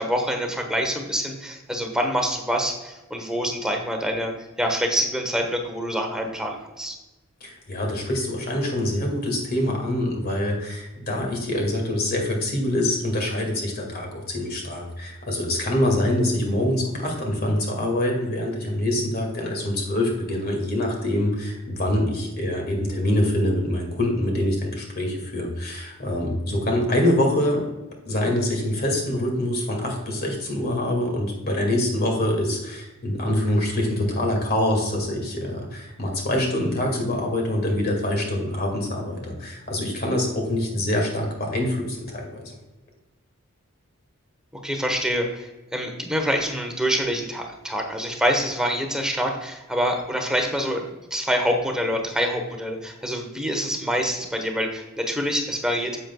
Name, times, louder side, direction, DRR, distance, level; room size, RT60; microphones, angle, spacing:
voice 1, 0.0-4.3 4.6-7.0 44.6-50.8 51.1-56.0, equal, 5° right, 3 dB, 1.0 m, -26 dB
voice 2, 7.4-27.6 28.1-42.6, left 1 dB, 45° left, 1 dB, 2.1 m, -25 dB
10.0 x 7.7 x 2.3 m, 1.0 s
head